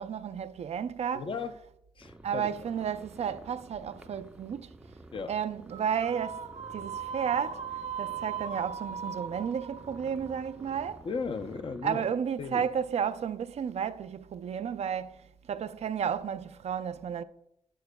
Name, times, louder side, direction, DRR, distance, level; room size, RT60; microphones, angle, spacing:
voice 1, 0.0-1.2 2.2-4.7 5.3-6.4 6.7-7.6 8.0-11.0 11.8-15.2 15.5-17.2, right 8 dB, 65° right, 0.4 m, -32 dB
voice 2, 1.1-1.5 2.0-2.5 5.1-5.4 11.0-12.1 12.4-12.6, left 4 dB, 45° left, 0.6 m, -36 dB
sound 1, 2.0-11.9, right 1 dB, 10° right, 0.5 m, -52 dB
sound 2, 5.7-11.1, right 7 dB, 90° right, 0.8 m, -39 dB
11.5 x 10.5 x 2.2 m
wide cardioid pair, 140°, 12 cm